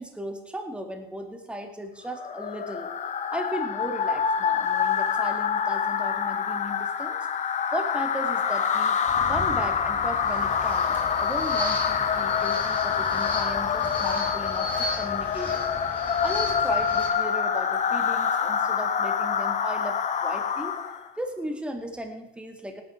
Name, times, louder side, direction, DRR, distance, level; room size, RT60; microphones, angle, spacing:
voice 1, 0.0-2.9 3.3-7.2 7.7-9.0 9.3-15.6 15.9-20.7 21.2-22.8, equal, 5° right, 4 dB, 2.2 m, -36 dB
sound 1, 2.2-21.1, left 7 dB, 45° left, 1.1 m, -26 dB
sound 2, 9.1-17.1, left 1 dB, 10° left, 5.8 m, -36 dB
sound 3, 9.3-11.1 11.4-12.4 13.4-13.5 13.8-16.0 16.4-17.9, left 6 dB, 90° left, 1.8 m, -42 dB
18.5 x 9.1 x 4.5 m, 0.92 s
cardioid pair, 110°, 17 cm